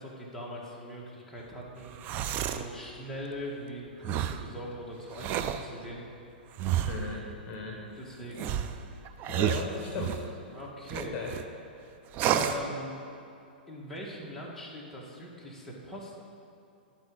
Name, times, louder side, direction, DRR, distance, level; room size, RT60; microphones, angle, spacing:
voice 1, 0.0-1.9 2.5-6.0 8.0-8.5 10.5-11.2 12.3-13.0 13.7-16.2, left 1 dB, 5° left, -5 dB, 1.9 m, -41 dB
sound 1, 1.8-2.7 4.0-4.5 5.1-5.7 6.6-7.2 8.3-10.3 10.9-11.4 12.1-12.7, right 10 dB, 35° right, 0.5 m, -30 dB
voice 2, 6.9-7.8 9.3-10.2 11.0-11.3, left 4 dB, 35° left, -1 dB, 1.4 m, -37 dB
12.0 x 4.6 x 7.8 m, 2.7 s
hypercardioid pair, 120°, 5 cm